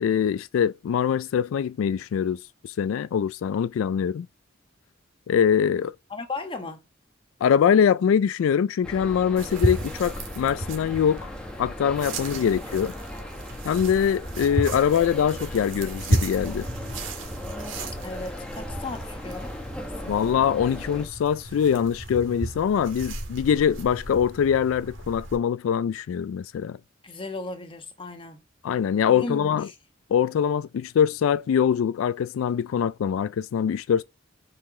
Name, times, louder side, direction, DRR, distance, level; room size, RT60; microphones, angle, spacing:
voice 1, 0.0-4.3 5.3-6.0 7.4-11.3 11.6-12.9 13.6-16.7 20.1-26.8 28.6-29.7 30.1-34.0, left 8 dB, 80° left, 0.3 m, -23 dB
voice 2, 6.1-6.8 18.0-20.3 27.0-28.4 29.0-29.7, left 3 dB, 25° left, 1.2 m, -36 dB
sound 1, 8.8-21.1, left 1 dB, 5° left, 1.1 m, -38 dB
sound 2, 9.4-25.4, right 1 dB, 75° right, 1.8 m, -33 dB
5.6 x 4.9 x 3.8 m
head